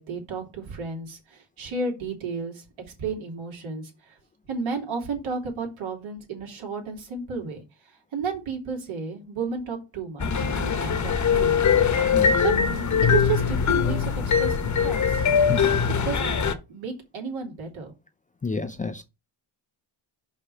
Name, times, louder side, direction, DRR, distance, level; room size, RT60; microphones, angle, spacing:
voice 1, 0.0-4.2 4.5-12.1 12.4-12.5 13.1-15.2 15.6-16.4 16.7-17.9, right 5 dB, 70° right, 3.1 m, -33 dB
sound 1, 10.2-16.5, left 6 dB, 35° left, 1.0 m, -22 dB
voice 2, 12.1-12.4 15.5-15.8 18.4-19.0, left 4 dB, 15° left, 0.4 m, -30 dB
5.3 x 5.2 x 5.6 m
cardioid pair, 110°, 50 cm